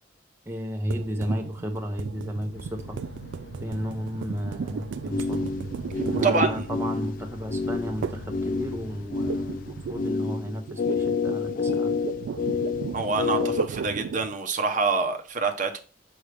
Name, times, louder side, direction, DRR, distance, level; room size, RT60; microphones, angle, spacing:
voice 1, 0.5-3.0 3.6-5.5 6.1-11.9, equal, 15° right, 3 dB, 0.8 m, -33 dB
sound 1, 0.9-7.2 8.0-8.4 8.7-14.4, right 6 dB, 85° right, 0.3 m, -34 dB
sound 2, 2.5-10.0, left 3 dB, 85° left, 0.7 m, -43 dB
sound 3, 5.1-13.7, left 4 dB, 50° left, 0.4 m, -29 dB
voice 2, 6.2-6.7 12.9-15.8, right 3 dB, 45° right, 4 dB, 0.9 m, -26 dB
6.2 x 5.4 x 3.4 m, 0.38 s
head